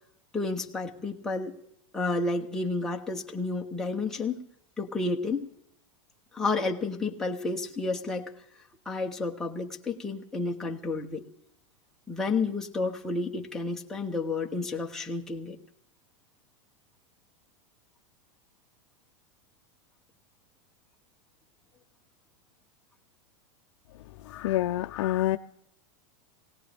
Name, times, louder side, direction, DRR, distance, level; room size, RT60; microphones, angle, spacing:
voice 1, 0.3-1.6 1.9-4.4 4.8-5.5 6.3-8.3 8.9-11.2 12.1-15.6, left 3 dB, 5° left, 0.8 m, -31 dB
voice 2, 24.2-25.4, left 14 dB, 60° left, 0.5 m, -27 dB
19.5 x 17.5 x 3.4 m
supercardioid pair, 170°, 16 cm